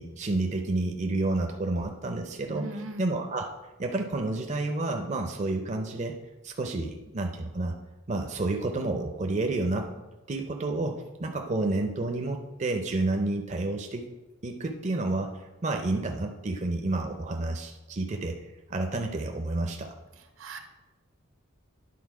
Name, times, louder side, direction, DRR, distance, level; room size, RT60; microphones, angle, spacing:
voice 1, 0.0-2.7 3.0-3.5 3.8-6.2 6.4-7.7 8.1-9.9 10.3-14.0 14.4-18.4 18.7-19.9, right 2 dB, 35° right, 3 dB, 0.5 m, -30 dB
voice 2, 2.5-3.1 20.4-20.6, right 2 dB, 75° right, 6 dB, 0.9 m, -38 dB
10.0 x 3.9 x 4.8 m, 1.1 s
head